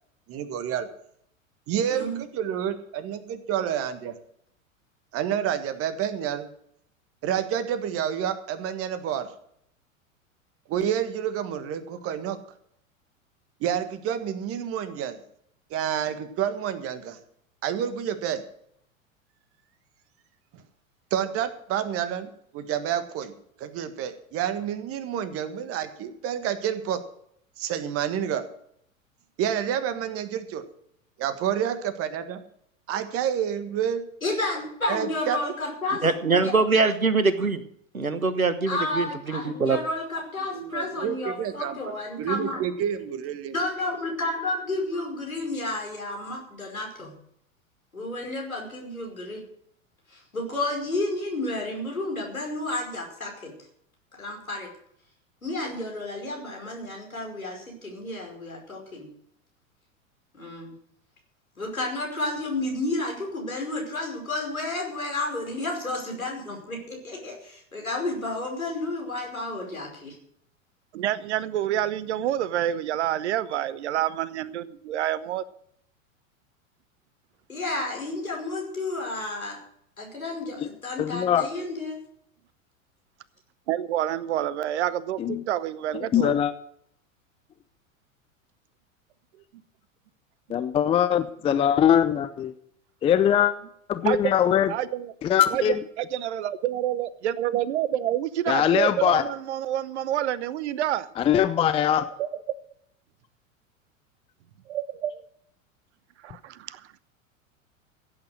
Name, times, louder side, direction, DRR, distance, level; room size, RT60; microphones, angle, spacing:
voice 1, 0.3-0.9 1.7-4.1 5.1-6.5 7.2-9.3 10.7-12.4 13.6-15.2 15.7-17.2 17.6-18.4 20.5-20.6 21.1-27.0 27.6-28.4 29.4-30.6 31.2-32.4 32.9-34.0 34.9-35.4 40.5-43.6, right 9 dB, 35° right, 11 dB, 1.7 m, -29 dB
voice 2, 1.9-2.2 34.2-36.1 36.4-36.5 38.7-42.6 43.5-47.1 47.9-49.4 50.1-53.5 54.2-54.7 55.4-59.1 60.3-60.7 61.6-70.2 77.5-79.6 80.0-82.0, left 2 dB, 80° left, 0 dB, 5.3 m, -31 dB
voice 3, 36.0-37.6 37.9-39.8, right 4 dB, 85° right, 12 dB, 1.4 m, -23 dB
voice 4, 70.9-75.4 83.7-86.4 94.0-94.2 94.7-95.1 95.5-101.1 102.0-102.3 104.7-105.2 106.2-107.0, right 12 dB, 55° right, 17 dB, 1.0 m, -28 dB
voice 5, 81.0-81.5 85.2-85.4 86.1-86.5 90.5-92.5 93.0-93.5 93.9-94.7 95.2-95.8 98.5-99.2 101.2-102.0, left 9 dB, 15° left, 12 dB, 0.5 m, -21 dB
16.0 x 8.8 x 6.4 m, 0.68 s
figure-of-eight pair, 90°, 41 cm